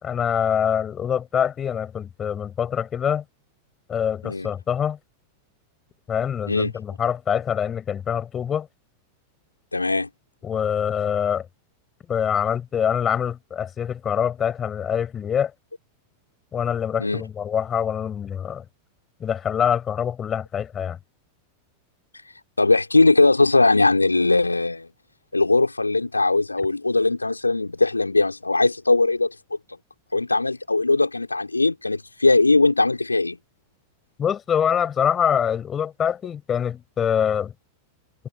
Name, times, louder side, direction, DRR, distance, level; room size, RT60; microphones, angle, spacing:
voice 1, 0.0-3.2 3.9-5.0 6.1-8.7 10.4-11.5 12.1-15.5 16.5-18.6 19.2-21.0 34.2-37.5, left 8 dB, 25° left, 6.5 m, -24 dB
voice 2, 9.7-10.1 17.0-17.2 22.6-24.9 25.3-29.3 30.1-33.4, left 3 dB, 80° left, 4.5 m, -20 dB
figure-of-eight pair, 90°, 0 cm